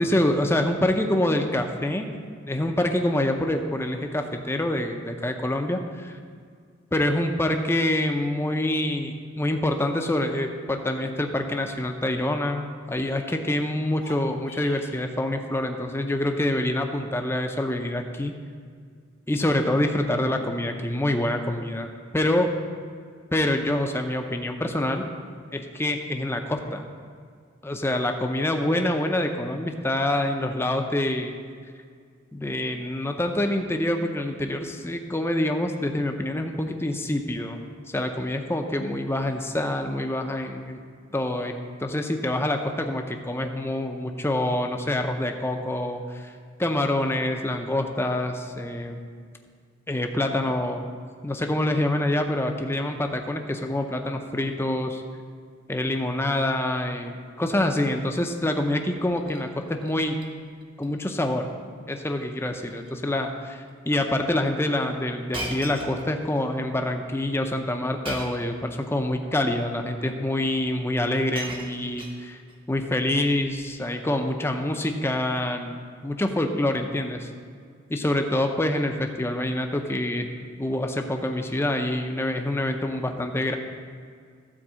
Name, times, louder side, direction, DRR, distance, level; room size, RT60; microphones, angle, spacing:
voice 1, 0.0-6.2 6.9-18.4 19.3-22.5 23.3-25.0 25.5-26.8 27.6-31.3 32.3-37.6 37.9-40.8 41.1-41.5 41.8-46.3 46.6-49.0 49.9-50.8 51.2-54.9 55.7-60.2 60.8-61.5 61.9-72.4 72.7-75.8 76.0-77.3 77.9-80.3 80.6-83.6, left 1 dB, 10° left, 4 dB, 0.6 m, -26 dB
sound 1, 13.9-15.1, left 2 dB, 75° left, 1.7 m, -44 dB
Shatter, 59.0-59.5 59.8-60.3 60.6-60.9 61.1-61.2 62.1-62.3 62.7-62.9 63.7-63.8 65.3-66.4 68.0-68.5 69.5-69.6 70.7-70.8 71.0-72.6 73.5-73.8, right 1 dB, 25° right, 1.1 m, -38 dB
12.5 x 4.7 x 7.4 m, 2.1 s
head